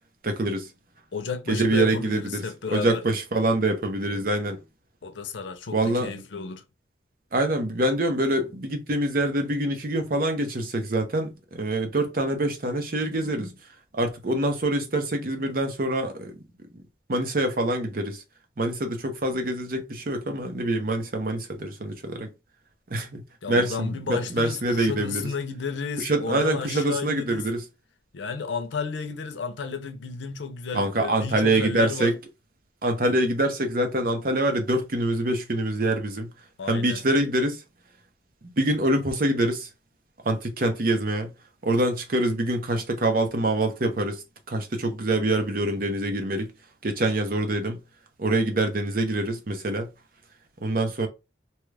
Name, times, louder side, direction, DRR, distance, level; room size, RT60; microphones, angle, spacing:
voice 1, 0.2-0.7 1.5-2.4 2.7-4.6 5.7-6.1 7.3-13.5 13.9-16.4 17.1-18.2 18.6-22.3 22.9-23.2 23.5-25.3 26.0-27.6 30.7-32.1 32.8-36.3 36.7-37.6 38.6-39.7 40.2-41.3 41.6-46.5 46.8-47.8 48.2-49.9 50.6-51.1, right 1 dB, 50° right, 0.7 m, -25 dB
voice 2, 1.1-3.1 5.0-6.6 23.4-27.5 28.1-32.1 36.6-37.0, left 5 dB, 85° left, 0.6 m, -32 dB
2.9 x 2.3 x 3.2 m
head